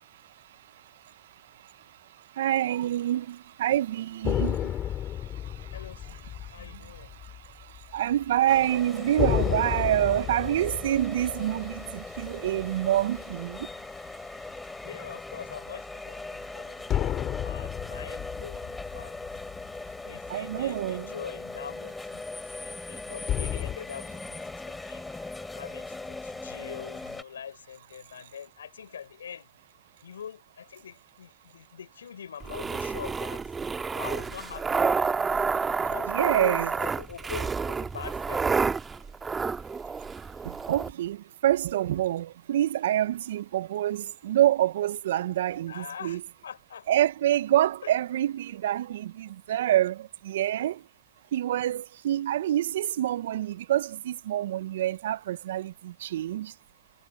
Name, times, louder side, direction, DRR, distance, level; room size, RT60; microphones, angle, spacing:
voice 1, 2.4-4.7 7.9-13.6 20.3-21.1 36.1-36.7 40.7-41.2 41.4-46.2 46.9-50.0 50.2-50.8 51.3-56.5, right 12 dB, 70° right, 0.8 m, -26 dB
sound 1, 4.2-8.0 8.2-8.4 9.2-13.8 16.9-20.5 23.3-23.8, left 11 dB, 35° left, 3.8 m, -32 dB
voice 2, 5.7-7.2 11.3-11.7 14.8-19.4 20.0-22.3 22.6-25.0 25.5-29.5 30.0-33.6 33.9-34.9 35.8-38.5 45.7-47.1 47.8-47.9 49.5-49.6, left 8 dB, 85° left, 4.4 m, -43 dB
sound 2, 8.5-27.2, left 3 dB, 10° left, 4.3 m, -40 dB
sound 3, 32.4-40.9, right 5 dB, 20° right, 1.6 m, -29 dB
hypercardioid pair, 95°, 0 cm